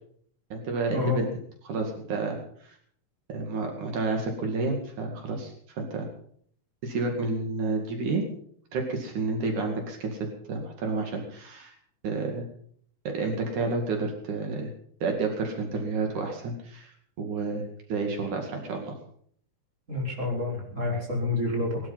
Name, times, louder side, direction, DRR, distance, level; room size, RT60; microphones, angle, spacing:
voice 1, 0.5-1.3 1.6-2.8 3.3-6.1 6.8-8.3 8.7-10.2 10.5-11.8 12.0-12.5 13.1-14.7 15.0-16.9 17.2-17.6 17.9-19.0, right 3 dB, 75° right, 2 dB, 3.7 m, -30 dB
voice 2, 19.9-21.8, left 2 dB, 25° right, -2 dB, 5.6 m, -28 dB
20.5 x 12.0 x 5.7 m, 0.62 s
omnidirectional pair, 3.5 m